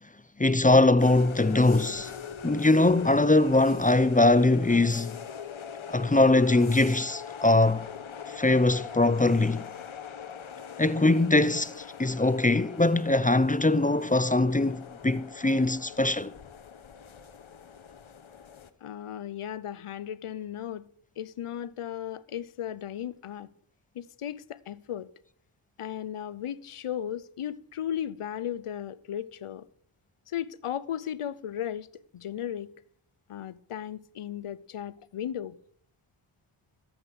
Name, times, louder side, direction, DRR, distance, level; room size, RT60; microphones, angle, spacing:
voice 1, 0.4-2.1 2.4-5.2 5.9-7.9 8.3-9.7 10.8-16.3, left 2 dB, 15° left, 0.6 m, -22 dB
sound 1, 1.0-18.7, left 7 dB, 70° left, 1.1 m, -42 dB
voice 2, 18.8-20.9 21.2-23.5 23.9-25.1 25.8-29.7 30.3-31.9 32.1-32.7 33.3-35.6, left 10 dB, 90° left, 0.7 m, -36 dB
13.5 x 8.0 x 6.4 m
cardioid pair, 40°, 50 cm